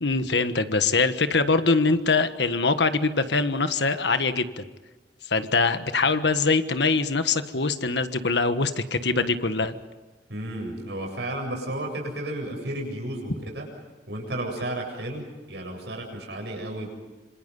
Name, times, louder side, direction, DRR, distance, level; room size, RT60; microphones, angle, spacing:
voice 1, 0.0-4.7 5.2-9.7, left 4 dB, 80° left, 10 dB, 1.5 m, -23 dB
voice 2, 10.3-13.7 14.1-16.9, right 1 dB, 75° right, 1 dB, 7.9 m, -33 dB
27.5 x 26.5 x 5.5 m, 1.2 s
head